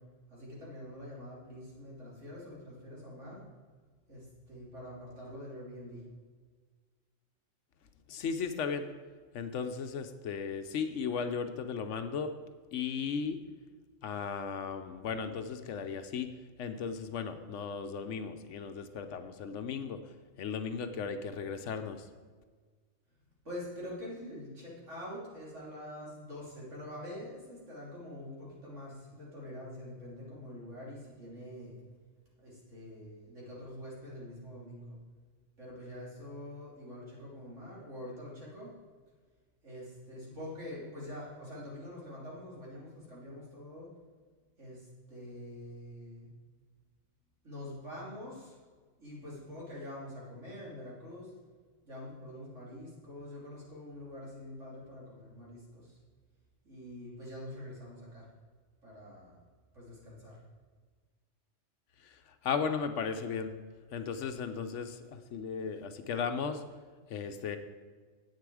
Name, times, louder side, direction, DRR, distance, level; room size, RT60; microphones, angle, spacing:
voice 1, 0.3-3.4 4.1-6.0 23.5-31.8 32.4-34.9 35.6-38.7 39.6-43.9 44.6-46.3 47.4-48.5 49.0-51.3 51.8-56.0 56.6-58.2 58.8-59.4 59.7-60.4, left 1 dB, 75° right, -6 dB, 3.6 m, -45 dB
voice 2, 8.1-8.9 9.3-12.3 12.7-13.4 14.0-16.3 16.6-20.0 20.4-22.0 62.4-63.5 63.9-66.6 67.1-67.6, left 6 dB, 75° left, 8 dB, 1.0 m, -36 dB
10.5 x 8.3 x 4.8 m, 1.5 s
omnidirectional pair, 1.3 m